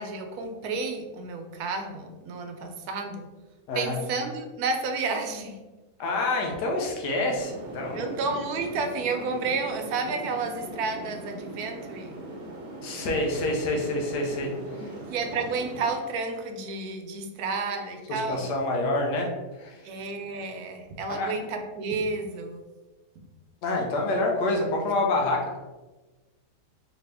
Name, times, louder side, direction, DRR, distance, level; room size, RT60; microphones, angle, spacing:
voice 1, 0.0-3.3 3.7-5.6 7.9-12.2 14.7-18.5 19.8-22.6, right 4 dB, 70° right, 5 dB, 1.1 m, -31 dB
voice 2, 6.0-8.2 12.8-14.9 18.1-19.9 21.1-21.3 23.6-25.6, left 2 dB, 85° left, 0 dB, 1.4 m, -27 dB
sound 1, 7.4-15.9, right 1 dB, 50° right, 0.7 m, -40 dB
4.2 x 2.8 x 3.3 m, 1.2 s
omnidirectional pair, 1.8 m